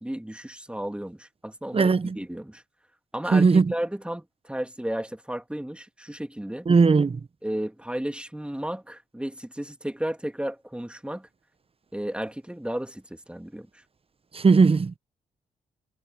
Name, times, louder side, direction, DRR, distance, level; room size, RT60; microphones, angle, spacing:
voice 1, 0.0-2.6 3.1-6.7 7.4-11.3 11.9-13.8, right 1 dB, 5° right, 2.8 m, -33 dB
voice 2, 1.7-2.2 3.3-3.7 6.7-7.2 14.3-15.0, right 4 dB, 35° right, 1.0 m, -18 dB
supercardioid pair, 50°, 16 cm